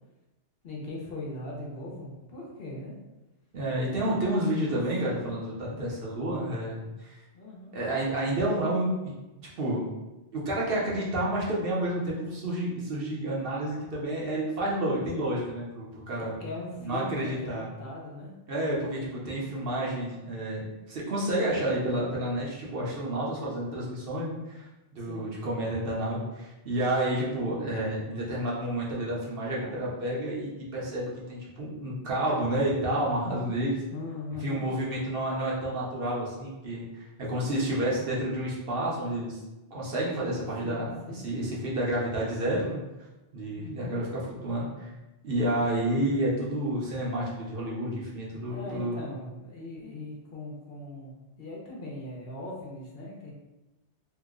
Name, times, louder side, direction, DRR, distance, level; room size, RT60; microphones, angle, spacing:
voice 1, 0.6-2.9 4.7-4.8 5.0-5.3 7.3-7.7 16.2-18.3 25.0-25.3 33.9-34.6 40.6-41.2 43.5-43.9 48.5-53.3, left 2 dB, 60° left, -4 dB, 0.9 m, -40 dB
voice 2, 3.5-7.1 7.7-9.1 9.6-9.9 10.3-16.3 16.8-17.7 18.5-24.7 24.9-33.8 34.4-39.4 39.7-42.8 43.3-44.9 45.2-49.0, right 1 dB, 60° right, -5 dB, 0.9 m, -30 dB
2.8 x 2.1 x 3.5 m, 1.0 s
omnidirectional pair, 1.2 m